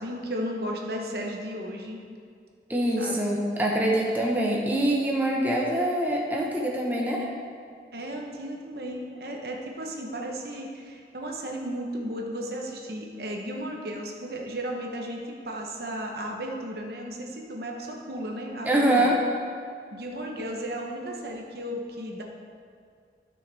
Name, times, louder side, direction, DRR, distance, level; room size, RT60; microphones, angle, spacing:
voice 1, 0.0-2.0 3.0-3.5 7.9-19.1 19.9-22.2, equal, 60° right, 0 dB, 1.0 m, -34 dB
voice 2, 2.7-7.3 18.6-19.2, right 1 dB, 10° right, -3 dB, 1.0 m, -24 dB
13.0 x 6.4 x 3.5 m, 2.2 s
head